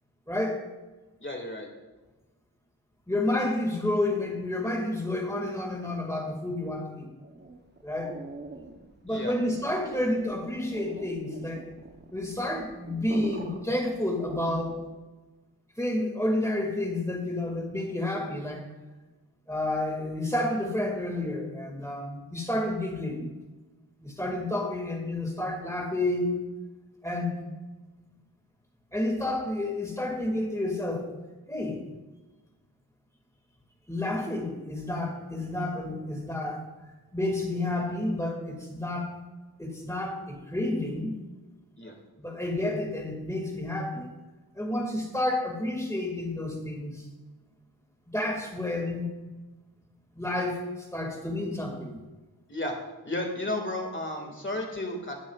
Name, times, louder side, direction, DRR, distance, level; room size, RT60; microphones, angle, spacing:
voice 1, 0.3-0.7 3.1-7.1 7.8-8.1 9.0-11.6 12.1-14.8 15.8-18.6 19.5-23.3 24.0-26.5 27.0-27.4 28.9-31.1 31.5-31.8 33.9-36.6 37.1-39.2 39.6-41.1 42.2-44.1 44.5-47.0 48.1-49.1 50.1-50.7 50.9-52.0, left 1 dB, 5° left, 1 dB, 2.0 m, -30 dB
voice 2, 1.2-1.7 9.1-9.4 41.8-41.9 52.5-52.7 53.0-55.2, left 1 dB, 30° left, 2 dB, 1.9 m, -33 dB
sound 1, 7.2-15.0, right 2 dB, 25° right, 0.8 m, -44 dB
19.5 x 7.2 x 2.4 m, 1.2 s
wide cardioid pair, 95°, 40 cm